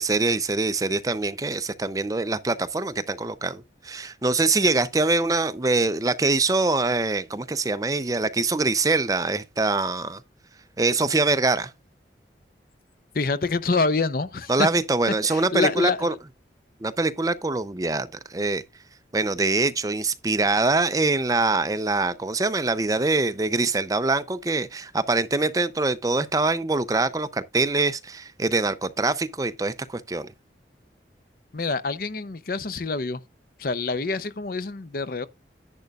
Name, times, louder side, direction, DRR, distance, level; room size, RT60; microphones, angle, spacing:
voice 1, 0.0-10.2 10.8-11.7 14.5-16.1 16.8-18.6 19.1-30.3, right 3 dB, 20° right, 0.5 m, -24 dB
voice 2, 13.1-14.7 15.3-16.2 31.5-33.2 33.6-35.3, left 4 dB, 50° left, 0.6 m, -26 dB
10.5 x 9.1 x 2.4 m
head